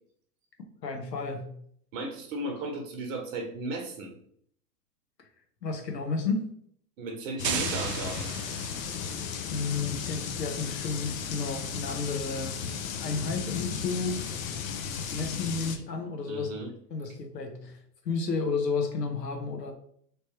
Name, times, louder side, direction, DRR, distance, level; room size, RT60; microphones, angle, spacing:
voice 1, 0.8-1.5 5.6-6.5 9.0-9.1 9.5-12.7 13.0-14.2 15.1-16.5 16.9-17.8 18.0-19.7, left 4 dB, 90° left, 4 dB, 0.9 m, -32 dB
voice 2, 1.9-4.1 7.0-8.3 16.3-16.7, right 2 dB, 55° right, 3 dB, 1.0 m, -35 dB
sound 1, 7.4-15.8, left 6 dB, 55° left, 0.6 m, -35 dB
sound 2, 7.4-9.3, right 7 dB, 85° right, 0.7 m, -34 dB
3.2 x 3.1 x 2.9 m, 0.65 s
hypercardioid pair, 110°, 48 cm